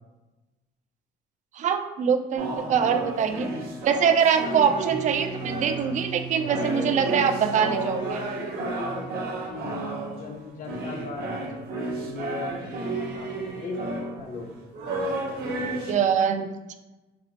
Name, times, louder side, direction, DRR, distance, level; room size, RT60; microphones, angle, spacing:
voice 1, 1.5-3.5 3.8-8.2 15.9-16.7, right 7 dB, 45° right, 7 dB, 0.4 m, -23 dB
sound 1, 2.4-6.1 6.4-15.9, right 2 dB, 65° right, 0.8 m, -32 dB
voice 2, 4.4-4.9 6.5-9.7 10.1-14.7 15.2-15.9, left 3 dB, 50° left, 2 dB, 0.6 m, -38 dB
sound 2, 4.9-9.3, right 6 dB, 90° right, 1.0 m, -40 dB
4.2 x 2.0 x 2.8 m, 1.1 s
cardioid pair, 110°, 17 cm